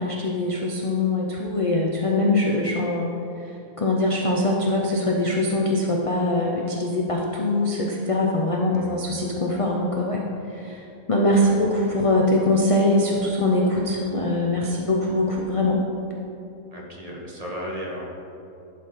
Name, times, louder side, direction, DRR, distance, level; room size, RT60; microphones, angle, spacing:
voice 1, 0.0-3.1 3.8-10.2 10.5-15.8, left 2 dB, 40° left, -1 dB, 0.5 m, -22 dB
voice 2, 8.7-9.1 11.4-11.5 16.7-18.0, equal, 30° right, -3 dB, 1.3 m, -35 dB
11.5 x 4.2 x 5.1 m, 2.8 s
omnidirectional pair, 1.5 m